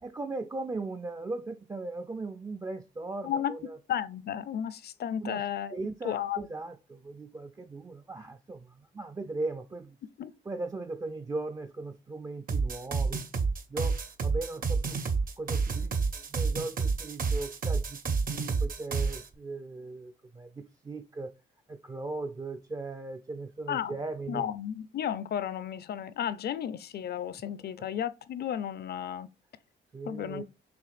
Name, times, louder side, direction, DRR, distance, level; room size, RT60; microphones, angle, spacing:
voice 1, 0.0-3.8 5.2-5.4 5.7-10.0 10.5-13.2 13.7-15.0 15.4-18.0 18.3-21.3 21.7-24.5 27.8-27.9 29.9-30.4, right 3 dB, 20° right, 0.4 m, -38 dB
voice 2, 3.9-5.8 6.0-6.5 10.2-10.3 23.7-24.0 24.3-29.3 30.0-30.4, left 9 dB, 55° left, 0.5 m, -33 dB
sound 1, 12.5-19.3, right 4 dB, 45° right, 0.8 m, -29 dB
5.8 x 3.2 x 2.5 m
cardioid pair, 90°, 20 cm